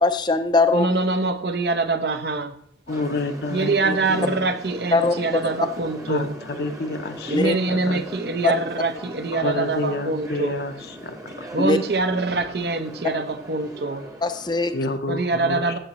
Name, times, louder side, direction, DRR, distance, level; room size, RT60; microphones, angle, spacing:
voice 1, 0.0-0.9 4.9-5.1 7.3-7.6 8.4-8.5 11.6-11.8 14.2-14.7, left 3 dB, 25° left, 9 dB, 0.5 m, -20 dB
voice 2, 0.7-2.5 3.5-6.3 7.3-10.6 11.5-14.1 15.1-15.8, right 3 dB, 60° right, 9 dB, 0.8 m, -24 dB
voice 3, 2.9-4.4 6.1-8.0 9.3-11.5 14.7-15.8, left 2 dB, 60° left, 8 dB, 0.7 m, -29 dB
sound 1, 2.9-14.8, right 1 dB, 20° right, 1.0 m, -39 dB
13.0 x 7.4 x 3.0 m, 0.67 s
head